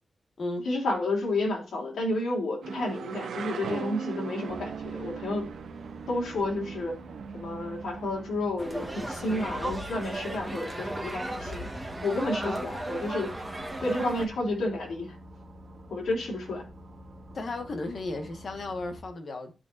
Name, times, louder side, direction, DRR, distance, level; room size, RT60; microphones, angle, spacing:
voice 1, 0.6-5.5 6.1-6.9 7.3-11.7 12.0-13.3 13.8-15.2 15.9-16.6, left 2 dB, 90° left, 3.2 m, -31 dB
sound 1, 2.6-8.5, right 6 dB, 90° right, 1.0 m, -39 dB
sound 2, 4.5-19.0, equal, 35° right, 2.1 m, -48 dB
sound 3, 8.6-14.3, right 1 dB, 10° right, 1.4 m, -35 dB
voice 2, 17.3-19.5, left 2 dB, 50° left, 1.6 m, -35 dB
13.0 x 5.8 x 2.7 m
wide cardioid pair, 130°, 0 cm